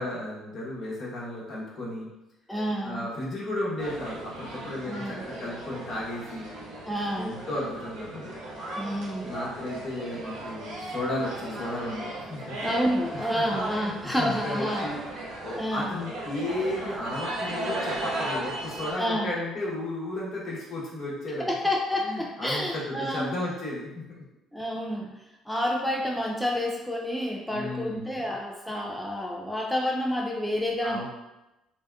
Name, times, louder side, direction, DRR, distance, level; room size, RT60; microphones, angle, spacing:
voice 1, 0.0-2.1 2.8-6.5 7.1-8.4 9.2-12.6 13.1-21.5 22.0-24.0 27.2-28.2 30.8-31.0, left 1 dB, 55° left, -5 dB, 0.9 m, -34 dB
voice 2, 2.5-3.1 4.8-5.3 6.9-7.3 8.7-9.3 12.6-14.9 15.5-16.0 19.0-19.3 21.4-23.3 24.5-25.1 25.5-31.0, equal, 5° left, -1 dB, 0.3 m, -29 dB
sound 1, 3.8-18.9, right 1 dB, 80° right, 0.6 m, -36 dB
2.7 x 2.1 x 2.3 m, 0.97 s
supercardioid pair, 70°, 0 cm